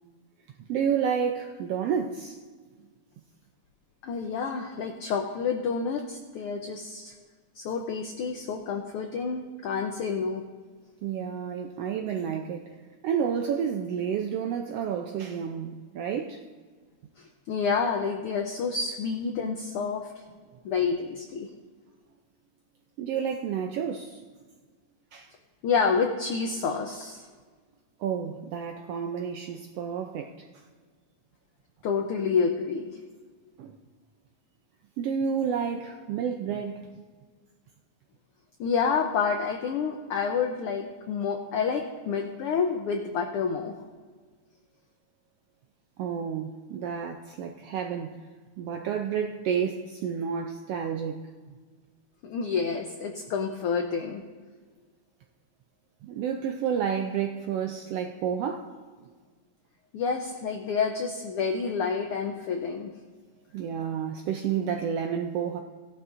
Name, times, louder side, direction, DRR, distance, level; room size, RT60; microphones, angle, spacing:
voice 1, 0.7-2.4 11.0-12.8 13.0-16.4 23.0-24.2 25.1-25.3 28.0-30.5 33.6-33.8 35.0-37.0 46.0-48.3 48.6-51.3 56.0-58.7 63.5-65.6, right 7 dB, 80° right, 1.4 m, -30 dB
voice 2, 4.0-7.1 7.5-10.4 17.5-20.1 20.6-21.5 25.6-27.3 31.8-33.0 38.6-43.7 52.2-54.2 59.9-62.9, left 5 dB, 85° left, 1.2 m, -28 dB
17.0 x 11.0 x 2.5 m
omnidirectional pair, 3.3 m